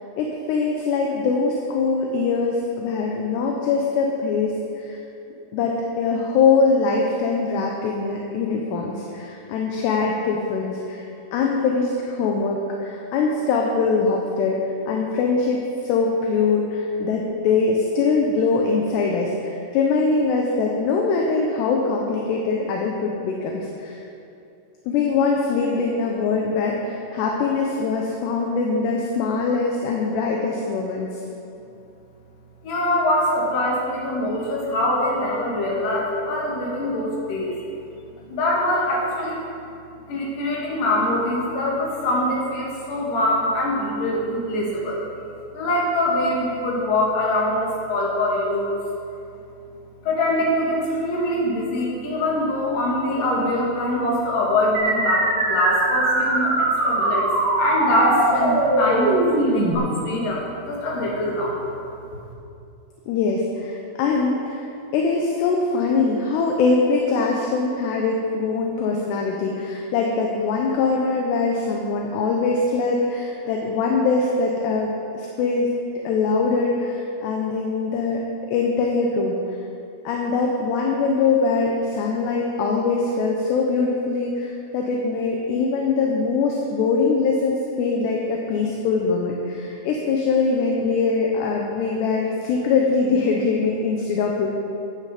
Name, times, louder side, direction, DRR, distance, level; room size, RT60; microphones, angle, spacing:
voice 1, 0.2-5.0 5.5-11.0 11.3-14.6 14.9-24.0 24.9-31.1 63.1-64.7 64.9-75.7 76.0-78.2 78.5-79.4 80.0-94.5, left 4 dB, 75° left, 0 dB, 2.7 m, -22 dB
voice 2, 32.6-37.6 38.3-39.4 40.1-45.0 45.5-48.8 50.0-57.3 57.6-61.7, left 1 dB, 50° left, -4 dB, 3.5 m, -23 dB
sound 1, 54.8-59.8, right 2 dB, 80° right, 4.8 m, -21 dB
15.0 x 9.6 x 5.2 m, 2.6 s
omnidirectional pair, 5.6 m